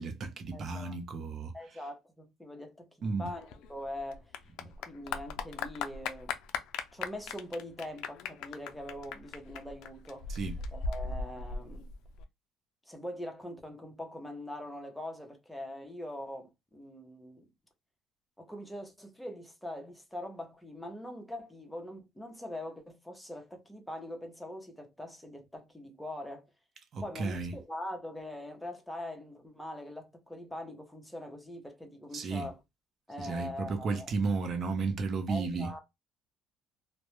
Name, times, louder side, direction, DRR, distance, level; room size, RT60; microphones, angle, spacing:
voice 1, 0.0-1.9 3.0-3.4 4.6-4.7 10.3-10.6 26.9-27.6 32.1-32.5 33.2-35.8, right 4 dB, 45° right, 0.6 m, -34 dB
voice 2, 0.5-1.0 1.5-4.2 4.9-6.4 6.9-10.4 10.7-11.9 12.9-17.5 18.4-26.5 27.0-32.6 33.1-34.1 35.3-35.8, left 1 dB, 5° left, 0.7 m, -42 dB
Clapping / Applause, 3.3-12.2, left 4 dB, 75° left, 0.3 m, -38 dB
2.2 x 2.0 x 2.9 m
cardioid pair, 120°, 0 cm